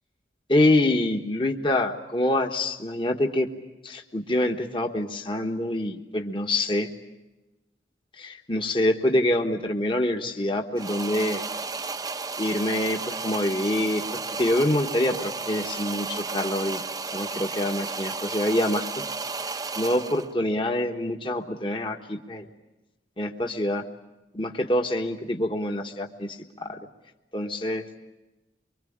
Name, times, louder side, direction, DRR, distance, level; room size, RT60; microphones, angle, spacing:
voice 1, 0.5-3.5 3.8-6.9 8.2-11.4 12.4-14.0 14.4-19.0 19.4-22.4 23.2-23.8 24.3-26.8 27.3-27.8, left 1 dB, 30° left, 4 dB, 1.4 m, -26 dB
sound 1, 10.8-20.3, right 4 dB, 20° right, 0.8 m, -33 dB
25.0 x 24.5 x 8.7 m, 1.1 s
head